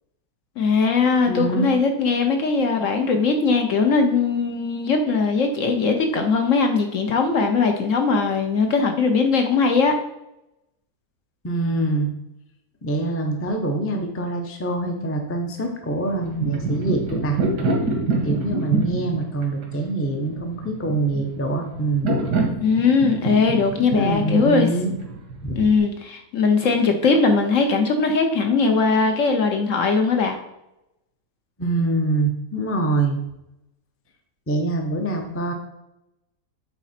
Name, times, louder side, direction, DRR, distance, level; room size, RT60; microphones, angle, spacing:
voice 1, 0.6-9.9 22.6-24.7 25.6-30.4, left 4 dB, 60° left, 5 dB, 1.0 m, -20 dB
voice 2, 1.3-1.7 11.4-12.1 12.8-17.4 18.2-22.2 23.8-24.9 25.4-25.6 31.6-33.2 34.5-35.5, right 2 dB, 15° left, 3 dB, 0.5 m, -24 dB
sound 1, 16.1-25.8, right 3 dB, 90° right, 1.9 m, -26 dB
8.1 x 4.0 x 4.2 m, 0.87 s
omnidirectional pair, 1.7 m